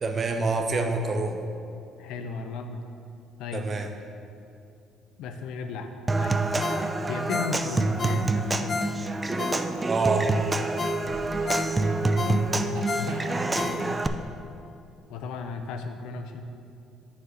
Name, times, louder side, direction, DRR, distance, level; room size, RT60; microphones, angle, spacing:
voice 1, 0.0-1.4 3.5-3.9 9.9-10.3, right 3 dB, 40° right, 5 dB, 0.8 m, -26 dB
voice 2, 2.0-2.8 3.4-3.6 5.2-5.9 6.2-6.4 7.0-9.0 12.2-14.2 15.1-16.4, left 4 dB, 80° left, 6 dB, 0.6 m, -35 dB
Human voice / Acoustic guitar / Percussion, 6.1-14.1, right 2 dB, 20° right, 0.4 m, -27 dB
Ringtone, 6.6-10.1 10.4-10.5 10.8-14.2 14.6-14.7, left 5 dB, 40° left, 0.5 m, -34 dB
sound 1, 7.8-10.4 11.0-13.6, right 1 dB, 80° right, 1.7 m, -45 dB
6.9 x 4.7 x 6.4 m, 2.5 s
cardioid pair, 90°, 0 cm